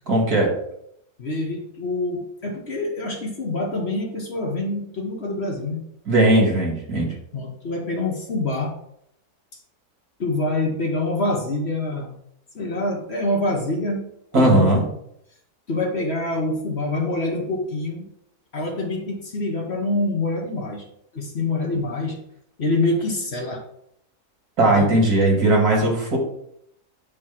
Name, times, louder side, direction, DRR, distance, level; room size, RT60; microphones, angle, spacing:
voice 1, 0.1-0.5 6.1-7.1 14.3-14.8 24.6-26.2, right 1 dB, 70° right, -1 dB, 2.7 m, -18 dB
voice 2, 1.2-5.8 7.3-8.7 10.2-12.1 12.5-14.8 15.7-18.1 18.5-20.8 21.1-22.2 22.6-23.6 24.7-25.0 25.8-25.9, left 2 dB, 45° left, 1 dB, 1.3 m, -26 dB
8.5 x 3.1 x 5.9 m, 0.73 s
omnidirectional pair, 1.6 m